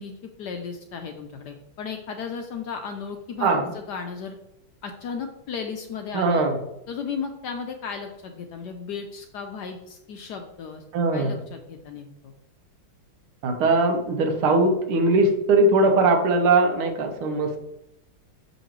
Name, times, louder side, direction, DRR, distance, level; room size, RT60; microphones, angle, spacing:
voice 1, 0.0-4.4 4.8-6.5 6.9-10.8 11.1-12.3, left 6 dB, 75° left, 5 dB, 1.0 m, -35 dB
voice 2, 3.4-3.7 6.1-6.6 10.9-11.4 13.4-17.6, right 2 dB, 85° right, 4 dB, 1.8 m, -20 dB
6.6 x 5.3 x 3.0 m, 0.88 s
omnidirectional pair, 2.3 m